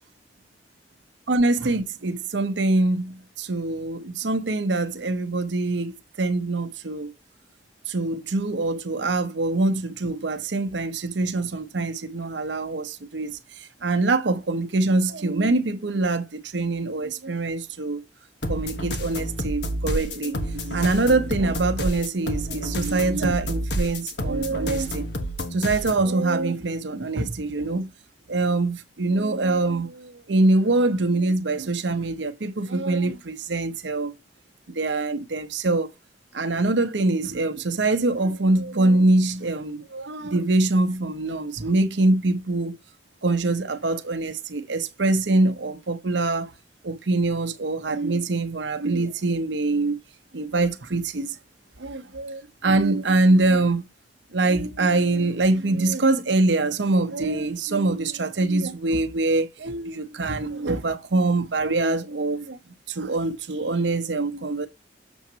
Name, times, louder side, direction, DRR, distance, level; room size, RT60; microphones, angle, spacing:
voice 1, 1.3-7.1 7.9-13.4 13.8-18.0 18.5-25.1 25.5-27.9 28.3-34.1 34.7-35.9 36.3-42.8 43.2-46.5 46.8-50.0 50.3-51.3 51.8-53.9 54.3-62.6 62.9-64.7, right 2 dB, 85° right, 0.9 m, -24 dB
sound 1, 18.4-26.0, equal, 70° left, 1.3 m, -29 dB
7.1 x 7.0 x 2.8 m
head